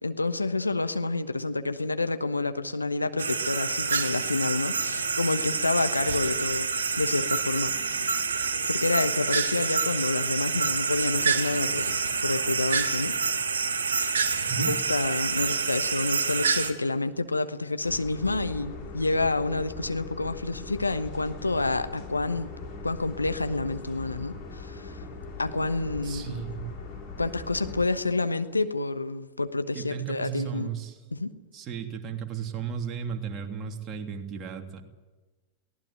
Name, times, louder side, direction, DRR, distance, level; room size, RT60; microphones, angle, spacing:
voice 1, 0.0-6.7 7.0-8.1 8.7-13.2 14.0-14.3 14.6-22.5 22.8-25.0 25.4-26.3 27.2-30.7 31.1-31.3, left 3 dB, 80° left, 10 dB, 1.1 m, -28 dB
sound 1, 3.2-16.7, right 5 dB, 70° right, 1.9 m, -27 dB
sound 2, 17.8-27.8, left 3 dB, 40° left, 6.8 m, -40 dB
voice 2, 26.0-26.6 29.7-31.0 31.5-34.8, right 8 dB, 30° right, 4 dB, 3.0 m, -34 dB
22.5 x 18.0 x 9.1 m, 1.2 s
figure-of-eight pair, 90°, 0 cm